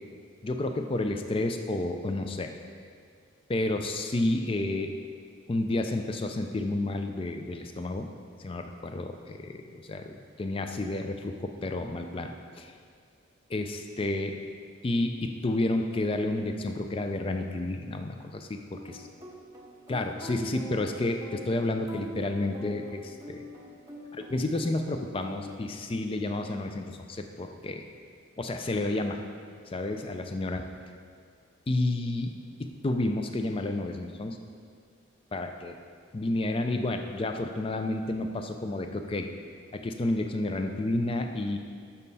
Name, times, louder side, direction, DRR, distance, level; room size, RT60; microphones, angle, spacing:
voice 1, 0.4-2.5 3.5-4.9 5.5-8.1 8.4-12.7 13.5-14.4 14.8-18.9 19.9-23.4 24.2-27.8 28.4-29.2 29.7-30.7 31.7-32.3 32.6-34.4 35.3-35.8 36.1-39.3 39.7-41.6, left 2 dB, 25° left, 6 dB, 0.3 m, -30 dB
sound 1, 18.7-26.2, equal, 15° right, 0.7 m, -45 dB
7.2 x 5.4 x 4.1 m, 2.1 s
head